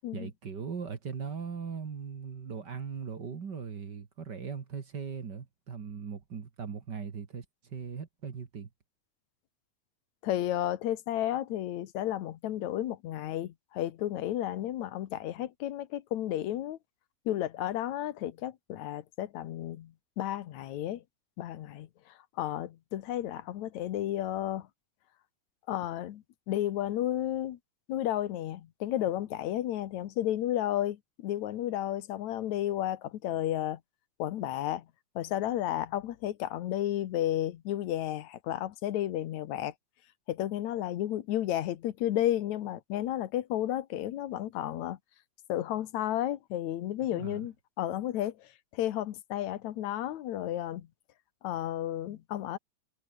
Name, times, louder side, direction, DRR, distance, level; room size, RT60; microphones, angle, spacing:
voice 1, 0.1-8.7 47.1-47.5, right 6 dB, 40° right, 2.1 m, -39 dB
voice 2, 10.2-16.8 17.3-21.0 21.4-21.9 22.4-24.7 25.7-27.6 27.9-33.8 34.2-34.9 35.2-39.7 40.3-45.0 45.5-50.9 51.4-52.6, left 12 dB, 75° left, 2.5 m, -32 dB
omnidirectional pair, 3.4 m